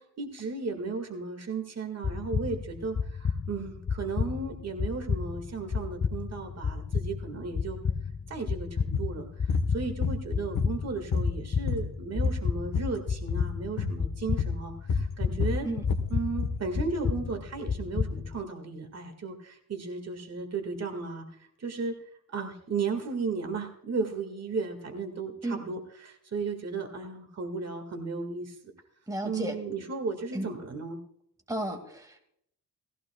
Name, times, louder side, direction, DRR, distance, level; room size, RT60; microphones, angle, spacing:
voice 1, 0.2-7.8 8.3-15.7 16.1-21.9 22.3-28.6 29.2-31.0, right 4 dB, 45° right, 4 dB, 2.0 m, -35 dB
sound 1, 2.0-18.4, left 6 dB, 25° left, 0.5 m, -32 dB
sound 2, 8.9-9.1 9.5-9.7 10.0-10.9 11.1-12.9 13.2-13.5 13.8-14.0 14.4-14.6 14.9-16.6, left 5 dB, 65° left, 1.5 m, -29 dB
voice 2, 29.1-29.5 30.3-30.5 31.5-32.2, right 1 dB, 10° right, 3 dB, 2.3 m, -33 dB
18.5 x 15.5 x 2.4 m, 0.70 s
cardioid pair, 120°, 34 cm